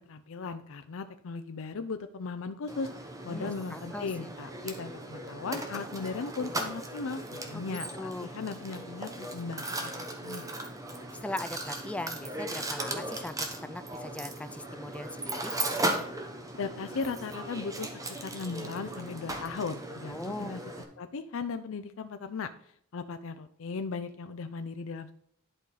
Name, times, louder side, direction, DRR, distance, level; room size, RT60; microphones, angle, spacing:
voice 1, 0.0-2.9 3.2-10.4 16.6-17.9 18.2-20.6 21.0-22.5 22.9-25.1, left 4 dB, 65° left, 9 dB, 0.5 m, -37 dB
Mechanisms, 2.7-20.8, right 2 dB, 15° right, 0.9 m, -37 dB
voice 2, 3.3-4.3 7.5-8.3 11.2-13.4 13.6-15.5 20.1-20.6, left 2 dB, 5° left, 10 dB, 0.3 m, -39 dB
11.0 x 4.8 x 3.9 m, 0.69 s
head